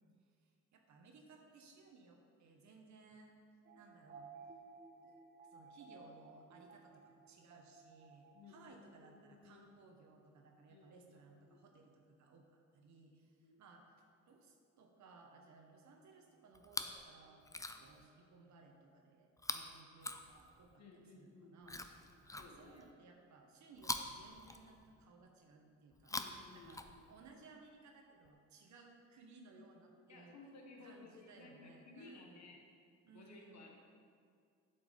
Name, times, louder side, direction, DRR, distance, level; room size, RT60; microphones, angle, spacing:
voice 1, 0.3-3.3 3.7-4.3 5.0-5.2 5.5-20.8 21.2-21.8 22.4-26.2 26.5-26.8 27.1-30.4 30.8-32.5 33.0-33.7, right 3 dB, 70° right, 2 dB, 1.3 m, -61 dB
sound 1, 3.6-8.7, right 4 dB, 35° right, 0.7 m, -57 dB
voice 2, 8.3-9.8 10.7-11.6 13.4-13.6 20.8-21.9 22.4-22.8 26.1-27.1 30.1-32.6 33.1-33.8, left 3 dB, 60° left, 1 dB, 1.8 m, -58 dB
Chewing mastication, 16.5-17.0 17.4-18.0 19.4-20.8 21.6-22.9 23.8-25.0 25.9-27.3 28.2-28.3, left 2 dB, 10° left, 0.6 m, -45 dB
8.2 x 7.3 x 5.2 m, 2.2 s
cardioid pair, 90°, 30 cm